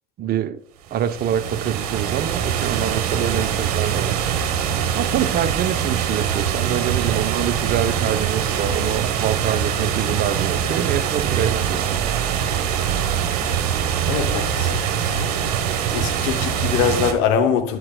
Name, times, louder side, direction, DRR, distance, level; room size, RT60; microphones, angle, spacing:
voice 1, 0.2-0.6 0.9-4.2 4.9-12.0, right 9 dB, 55° right, 0.7 m, -25 dB
sound 1, 0.9-17.1, right 8 dB, 75° right, 1.1 m, -23 dB
voice 2, 14.1-15.3 15.9-17.8, left 7 dB, 70° left, 0.7 m, -23 dB
9.7 x 7.6 x 2.2 m
hypercardioid pair, 55°, 20 cm